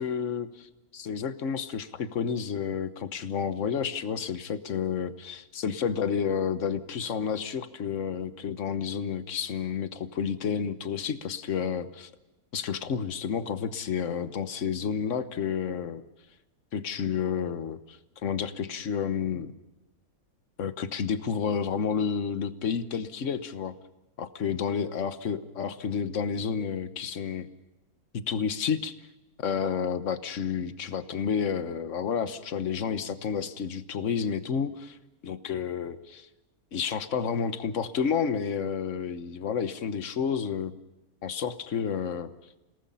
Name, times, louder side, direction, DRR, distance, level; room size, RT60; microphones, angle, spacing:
voice 1, 0.0-12.1 12.5-16.0 16.7-19.5 20.6-23.7 24.2-27.5 28.1-28.9 29.4-35.0 35.2-36.3 36.7-40.7 41.2-42.3, left 7 dB, 60° left, 11 dB, 1.4 m, -30 dB
29.5 x 18.5 x 5.6 m, 0.99 s
omnidirectional pair, 1.6 m